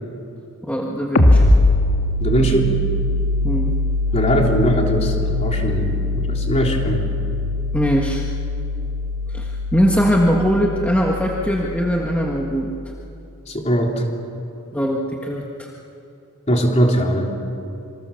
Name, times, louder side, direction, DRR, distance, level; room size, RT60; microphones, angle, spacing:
voice 1, 0.6-1.4 3.4-3.7 7.7-8.2 9.3-12.7 14.7-15.7, equal, 5° left, -2 dB, 1.7 m, -21 dB
sound 1, 1.2-12.5, left 1 dB, 80° left, 2.1 m, -21 dB
voice 2, 2.2-2.7 4.1-7.1 13.5-14.1 16.5-17.3, equal, 30° left, 0 dB, 3.5 m, -20 dB
27.5 x 25.0 x 7.1 m, 2.7 s
head